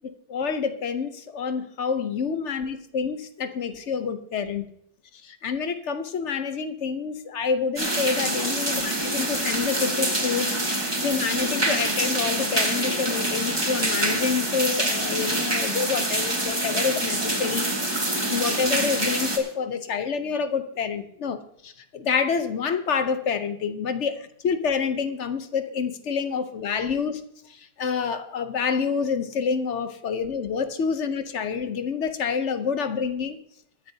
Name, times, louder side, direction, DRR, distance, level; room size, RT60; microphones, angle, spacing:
voice 1, 0.3-4.7 5.2-10.6 11.0-17.7 18.3-27.2 27.5-33.4, left 6 dB, 50° left, 10 dB, 0.9 m, -27 dB
sound 1, 7.8-19.4, right 1 dB, 15° right, 1.7 m, -26 dB
23.0 x 10.0 x 2.8 m, 0.69 s
omnidirectional pair, 1.9 m